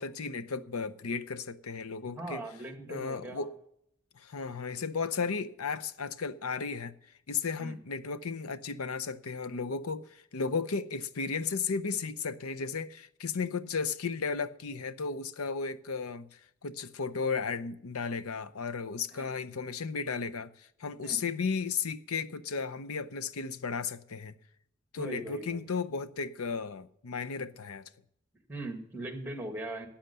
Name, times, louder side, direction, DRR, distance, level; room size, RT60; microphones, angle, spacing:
voice 1, 0.0-2.4 2.9-3.6 4.2-6.9 7.3-16.3 16.6-24.3 24.9-27.9, left 5 dB, 85° left, 0.7 m, -34 dB
voice 2, 2.0-3.5 7.6-7.8 19.1-19.3 21.0-21.3 25.0-25.7 28.5-29.9, right 1 dB, 10° right, 1.8 m, -40 dB
13.0 x 8.7 x 6.7 m
head